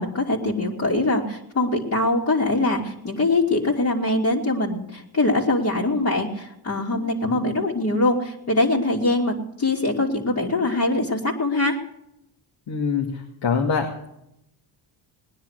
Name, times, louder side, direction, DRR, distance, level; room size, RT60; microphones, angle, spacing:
voice 1, 0.0-11.8, left 2 dB, 35° left, -4 dB, 2.9 m, -23 dB
voice 2, 12.7-13.1 13.4-14.1, left 5 dB, 65° left, 1 dB, 2.4 m, -24 dB
19.5 x 10.0 x 6.6 m, 0.82 s
cardioid pair, 115°, 47 cm